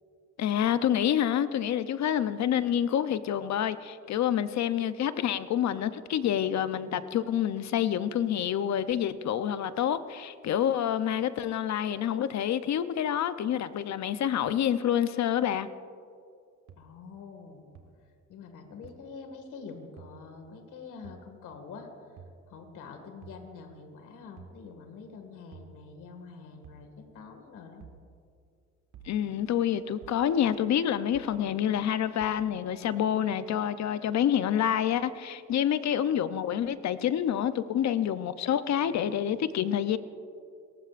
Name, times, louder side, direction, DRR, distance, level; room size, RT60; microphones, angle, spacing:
voice 1, 0.4-15.7 29.0-40.0, left 10 dB, 65° left, 0.7 m, -27 dB
sound 1, 16.7-16.8 17.7-17.8 18.8-18.9 20.0-20.1 21.0-21.2 22.2-22.4 23.2-23.4 24.4-24.6 25.5-25.7 26.6-26.9 27.8-28.0 28.9-29.2 30.0-30.2 31.1-31.4 32.2-32.4, right 7 dB, 75° right, 1.9 m, -49 dB
voice 2, 16.8-17.7 18.0-22.1 22.5-27.8, left 5 dB, 85° left, 2.1 m, -46 dB
29.5 x 15.0 x 2.5 m
cardioid pair, 90°, 30 cm